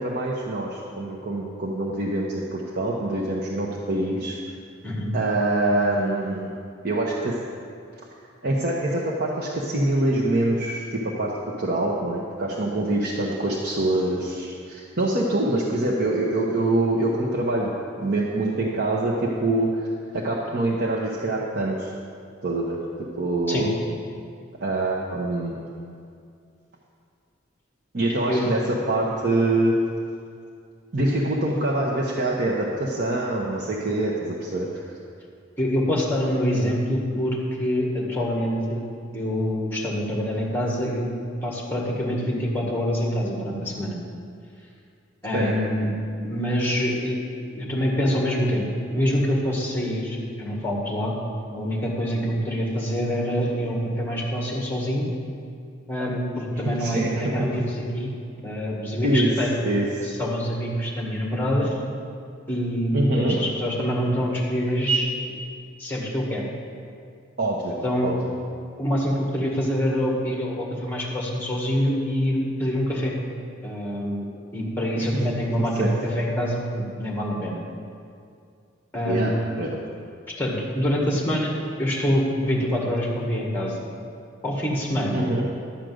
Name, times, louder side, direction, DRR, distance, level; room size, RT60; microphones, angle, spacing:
voice 1, 0.0-4.4 5.1-6.5 6.8-7.4 8.4-17.7 18.0-19.9 20.1-21.9 22.4-22.8 23.2-23.7 24.6-25.6 27.9-29.7 30.9-34.8 45.3-45.5 56.5-57.1 59.0-59.3 59.6-60.1 62.9-63.4 67.4-67.7 68.0-68.1 74.9-75.1 75.7-75.9 79.1-79.3 79.6-79.7 85.1-85.4, right 1 dB, 55° right, -4 dB, 1.0 m, -25 dB
voice 2, 35.6-38.9 39.1-41.1 41.4-44.0 45.2-45.9 46.2-47.2 47.5-51.1 51.5-55.0 55.9-58.1 58.4-59.6 60.0-61.8 62.5-65.1 65.8-66.4 67.8-68.1 68.8-73.1 73.6-74.3 74.5-77.6 78.9-79.3 80.4-81.5 81.8-83.8 84.4-85.3, equal, 10° left, -2 dB, 1.8 m, -25 dB
12.0 x 5.1 x 7.8 m, 2.3 s
head